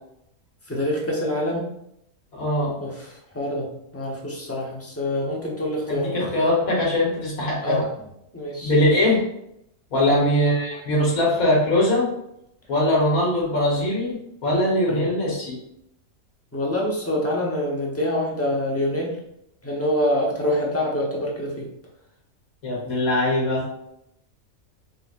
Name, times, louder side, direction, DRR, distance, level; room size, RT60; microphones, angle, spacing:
voice 1, 0.7-1.7 2.8-3.1 3.3-6.1 7.6-7.8 8.3-8.7 9.9-10.2 14.9-15.0 16.5-19.1 19.6-21.7, left 1 dB, 15° left, -3 dB, 0.7 m, -26 dB
voice 2, 2.3-2.8 5.9-7.9 8.6-9.2 9.9-12.1 12.7-14.2 14.4-15.6 22.6-23.9, left 1 dB, 85° left, -5 dB, 1.6 m, -21 dB
4.2 x 3.9 x 2.4 m, 0.79 s
omnidirectional pair, 1.4 m